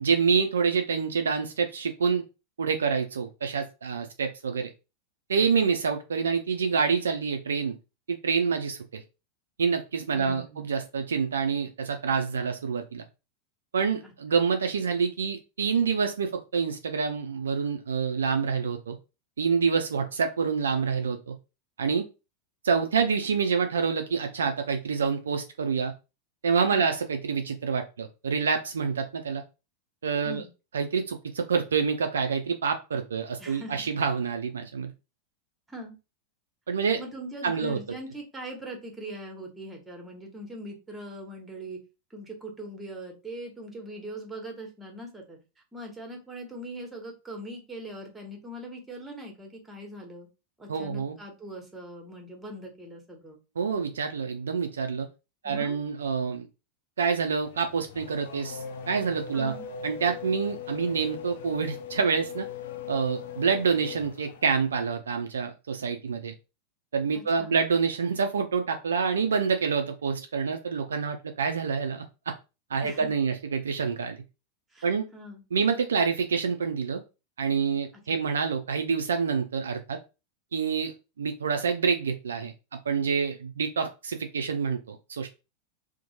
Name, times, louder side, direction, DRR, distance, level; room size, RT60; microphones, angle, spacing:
voice 1, 0.0-2.2 2.6-4.7 5.3-7.8 8.1-9.0 9.6-13.0 13.7-19.0 19.4-21.3 21.8-22.1 22.6-25.9 26.4-29.4 30.0-30.4 30.7-34.9 36.7-37.0 37.4-37.8 50.7-51.2 53.6-55.1 55.4-56.5 57.0-59.5 59.8-62.5 62.9-66.3 66.9-72.3 72.7-74.2 74.8-75.1 75.5-77.0 77.4-80.0 80.5-82.5 82.9-85.3, right 5 dB, 70° right, 5 dB, 0.3 m, -27 dB
voice 2, 10.1-10.7 14.0-14.4 26.7-27.0 30.2-30.5 33.4-33.8 35.7-36.0 37.0-41.8 42.1-45.4 45.7-50.3 50.6-53.4 55.4-55.8 59.3-59.7 67.1-67.6 72.8-73.1 74.7-75.4 77.9-78.2, right 1 dB, 10° right, 2 dB, 1.0 m, -41 dB
Race car auto racing / Accelerating revving vroom, 57.4-64.7, left 7 dB, 55° left, 0.3 m, -40 dB
2.7 x 2.1 x 2.8 m, 0.29 s
figure-of-eight pair, 90°, 0 cm